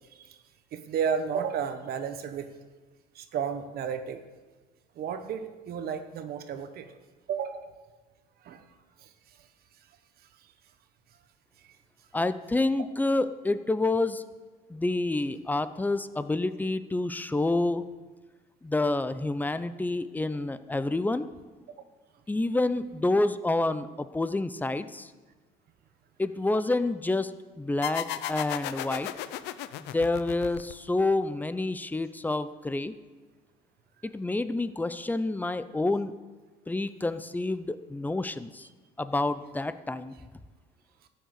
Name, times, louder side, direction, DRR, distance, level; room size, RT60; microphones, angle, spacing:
voice 1, 0.7-2.5 3.1-4.2 5.0-6.9 7.3-7.7 8.4-8.6, right 7 dB, 65° right, 9 dB, 1.1 m, -32 dB
voice 2, 12.1-14.2 14.7-17.8 18.6-21.3 22.3-25.1 26.2-27.3 27.6-29.1 29.8-32.9 34.0-36.1 36.7-38.7 39.0-40.1, left 2 dB, 10° left, 13 dB, 0.6 m, -28 dB
sound 1, 27.8-31.1, left 12 dB, 90° left, 0.6 m, -35 dB
13.5 x 6.6 x 8.1 m, 1.3 s
cardioid pair, 110°, 17 cm